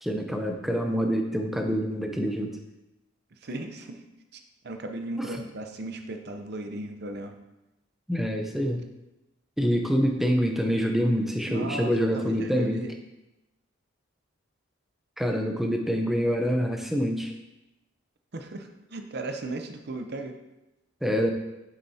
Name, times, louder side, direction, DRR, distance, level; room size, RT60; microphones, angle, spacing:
voice 1, 0.0-2.6 5.2-5.3 8.1-8.8 9.6-12.8 15.2-17.3 21.0-21.3, equal, ahead, 3 dB, 0.6 m, -26 dB
voice 2, 3.4-4.0 4.3-7.4 11.5-12.9 18.3-20.3, right 2 dB, 55° right, 6 dB, 0.7 m, -36 dB
7.3 x 7.1 x 2.8 m, 0.96 s
head